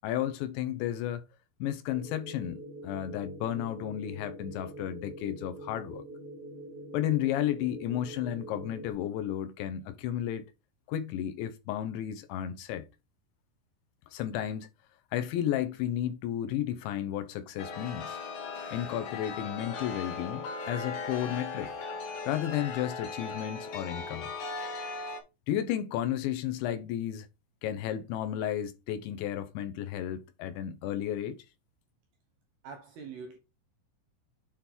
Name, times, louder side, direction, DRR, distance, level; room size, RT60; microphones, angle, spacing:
voice 1, 0.0-1.2 1.6-6.0 6.9-10.5 10.9-12.9 14.1-14.7 15.1-18.2 18.7-21.7 22.3-24.3 25.5-27.3 27.6-31.4, left 11 dB, 80° left, 3.0 m, -33 dB
sound 1, 1.9-8.9, right 1 dB, 50° right, 1.1 m, -44 dB
Chime, 17.6-25.2, left 4 dB, 55° left, 2.7 m, -38 dB
voice 2, 32.6-33.4, right 5 dB, 80° right, 2.3 m, -43 dB
8.3 x 3.8 x 4.4 m
omnidirectional pair, 5.4 m